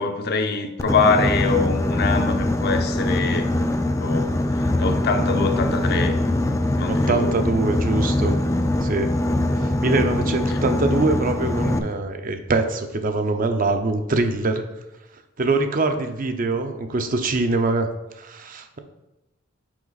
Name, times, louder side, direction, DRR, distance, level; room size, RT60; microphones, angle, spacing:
voice 1, 0.0-3.5 4.0-6.2 6.8-7.4 10.5-10.6, left 4 dB, 55° left, 0.6 m, -24 dB
Boat Water vehicle, 0.8-11.8, left 1 dB, 15° left, 0.4 m, -22 dB
voice 2, 6.9-8.4 8.8-9.1 9.6-14.6 15.4-17.9 18.2-18.8, right 3 dB, 45° right, 0.6 m, -23 dB
6.0 x 4.8 x 3.9 m
head